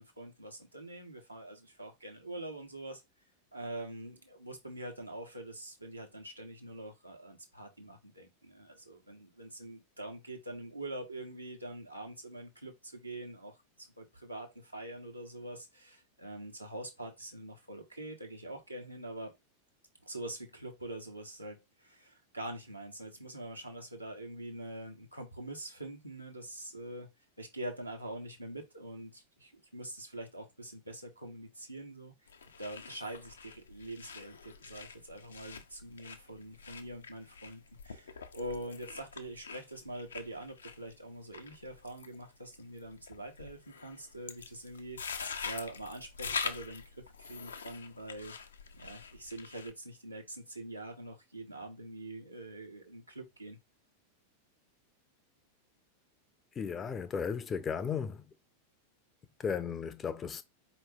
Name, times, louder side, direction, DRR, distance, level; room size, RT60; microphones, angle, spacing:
voice 1, 0.0-3.0 3.5-19.3 20.0-27.1 27.4-32.1 32.6-48.3 48.7-53.6, right 1 dB, 85° right, 1.3 m, -44 dB
sound 1, 32.3-49.7, left 5 dB, 70° left, 0.6 m, -44 dB
voice 2, 56.5-58.3 59.4-60.4, left 6 dB, 20° left, 0.5 m, -35 dB
4.5 x 3.1 x 3.4 m
figure-of-eight pair, 90°, 0 cm